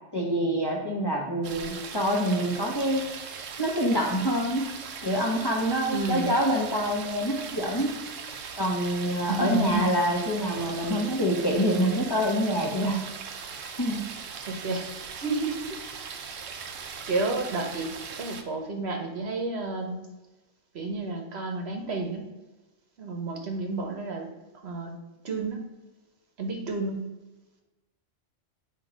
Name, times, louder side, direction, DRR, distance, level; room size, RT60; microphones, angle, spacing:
voice 1, 0.1-3.0 3.6-4.6 5.0-8.0 8.2-13.0 13.8-14.0, equal, 20° left, -2 dB, 0.9 m, -26 dB
sound 1, 1.4-18.4, right 6 dB, 85° right, 1.1 m, -39 dB
voice 2, 5.9-6.3 9.3-10.0 14.5-14.9 15.2-15.8 16.5-16.6 17.1-20.0 20.7-22.3 23.0-24.3 24.6-25.0 25.2-25.6 26.4-27.1, right 3 dB, 60° right, 3 dB, 1.2 m, -31 dB
8.2 x 3.0 x 4.9 m, 1.1 s
omnidirectional pair, 1.3 m